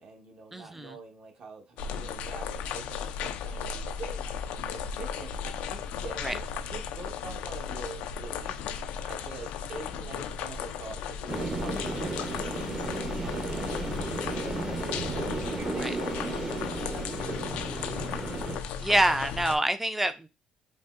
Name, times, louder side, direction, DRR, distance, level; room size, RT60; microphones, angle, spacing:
voice 1, 0.0-4.5 4.7-5.3 5.7-8.7 9.0-18.6, right 4 dB, 55° right, 2 dB, 1.1 m, -45 dB
voice 2, 0.5-0.9 6.2-6.3 15.8-15.9 18.8-20.3, right 1 dB, 10° right, 9 dB, 0.4 m, -26 dB
sound 1, 1.8-19.6, left 7 dB, 80° left, 0.4 m, -35 dB
sound 2, 11.3-18.6, right 3 dB, 30° right, 0.8 m, -34 dB
5.2 x 2.0 x 2.5 m, 0.27 s
supercardioid pair, 85°, 2 cm